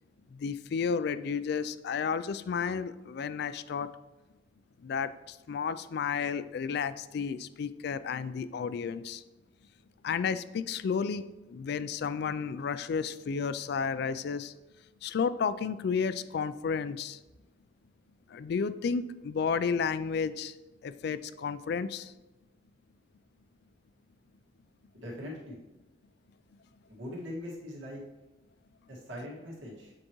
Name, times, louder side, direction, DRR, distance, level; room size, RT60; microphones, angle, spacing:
voice 1, 0.4-3.9 4.8-5.1 5.5-9.2 10.0-11.2 11.5-14.5 15.0-17.2 18.3-20.5 20.8-22.1, left 6 dB, 55° left, 14 dB, 0.3 m, -32 dB
voice 2, 24.9-25.6 26.9-28.0 28.9-29.9, left 1 dB, 75° right, -4 dB, 1.8 m, -41 dB
7.7 x 4.8 x 3.0 m, 1.1 s
head